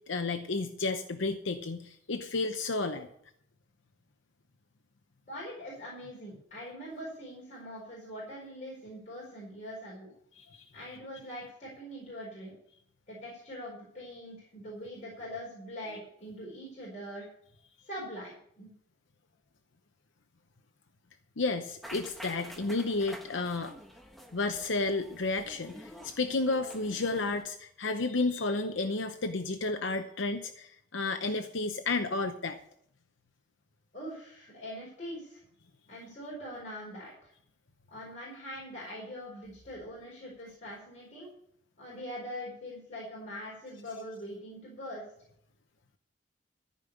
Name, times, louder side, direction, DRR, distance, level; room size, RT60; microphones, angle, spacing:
voice 1, 0.0-3.1 10.4-10.6 21.4-23.7 24.3-32.6, left 3 dB, 80° left, 7 dB, 0.8 m, -32 dB
voice 2, 5.2-10.1 10.7-12.5 13.1-17.3 17.8-18.7 33.9-35.4 35.9-37.3 37.9-41.3 41.8-45.0, equal, 40° left, -5 dB, 4.6 m, -43 dB
sound 1, 21.8-27.4, equal, ahead, 1.2 m, -49 dB
14.5 x 5.4 x 8.6 m, 0.68 s
head